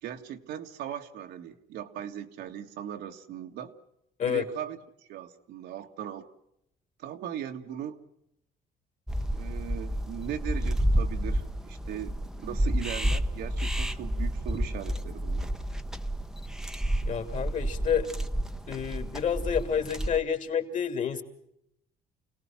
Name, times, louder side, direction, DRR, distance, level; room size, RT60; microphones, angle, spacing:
voice 1, 0.0-3.7 4.3-4.8 5.1-6.3 7.0-8.0 9.3-15.5, right 10 dB, 80° right, 4 dB, 2.0 m, -39 dB
sound 1, 9.1-20.2, equal, 5° right, 0.9 m, -30 dB
voice 2, 17.1-18.1 18.7-21.2, left 8 dB, 50° left, 7 dB, 2.8 m, -29 dB
29.5 x 18.0 x 6.0 m, 0.76 s
cardioid pair, 110°, 17 cm